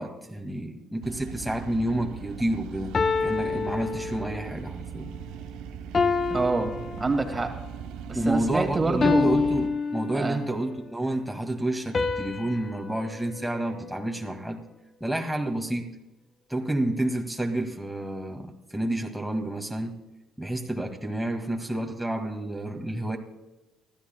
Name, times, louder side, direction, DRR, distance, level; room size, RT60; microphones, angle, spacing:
voice 1, 0.0-3.0 3.2-5.1 8.1-14.6 15.0-15.9 16.5-20.0 20.4-23.2, right 1 dB, ahead, 1 dB, 2.1 m, -29 dB
sound 1, 1.0-9.7, right 8 dB, 75° right, 0.8 m, -39 dB
sound 2, 1.5-1.8 2.9-4.6 5.9-7.6 9.0-10.6 11.9-14.4, left 4 dB, 40° left, 0.8 m, -28 dB
voice 2, 6.3-7.5 8.1-9.4 10.1-10.4, right 3 dB, 30° right, 4 dB, 2.2 m, -27 dB
24.5 x 14.0 x 2.3 m, 1.0 s
hypercardioid pair, 50°, 0 cm